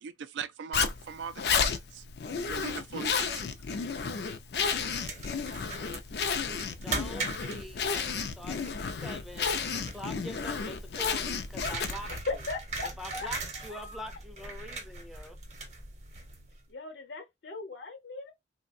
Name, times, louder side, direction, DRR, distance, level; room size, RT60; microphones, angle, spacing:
voice 1, 0.0-2.0 2.4-3.4, right 6 dB, 80° right, 0.4 m, -40 dB
Zipper (clothing), 0.7-12.2, left 6 dB, 60° left, 0.4 m, -32 dB
sound 1, 4.6-16.6, right 3 dB, 40° right, 0.7 m, -41 dB
voice 2, 6.6-12.1 12.8-15.4, equal, ahead, 0.4 m, -44 dB
voice 3, 12.1-13.3 13.5-14.1 16.7-18.3, left 3 dB, 80° left, 0.8 m, -38 dB
3.2 x 2.1 x 2.5 m
head